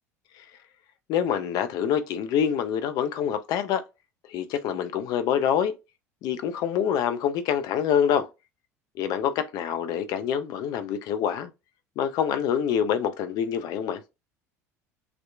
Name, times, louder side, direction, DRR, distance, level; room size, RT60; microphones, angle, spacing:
voice 1, 1.1-3.8 4.3-5.8 6.2-8.3 9.0-11.5 12.0-14.0, left 8 dB, 50° left, 0.4 m, -26 dB
2.8 x 2.1 x 2.3 m
figure-of-eight pair, 70°, 9 cm